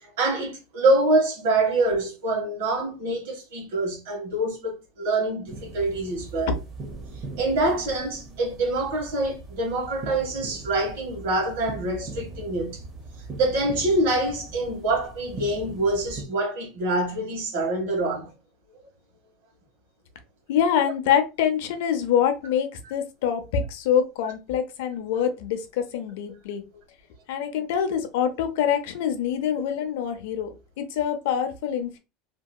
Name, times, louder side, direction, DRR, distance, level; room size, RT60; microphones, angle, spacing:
voice 1, 0.0-6.5 7.4-12.8 13.4-18.3 20.8-20.9, right 2 dB, 80° right, 1.5 m, -25 dB
sound 1, 5.5-16.2, right 2 dB, 25° right, 0.7 m, -40 dB
voice 2, 20.5-26.6 27.3-32.0, left 8 dB, 70° left, 0.6 m, -25 dB
2.9 x 2.7 x 2.2 m
supercardioid pair, 170°, 0 cm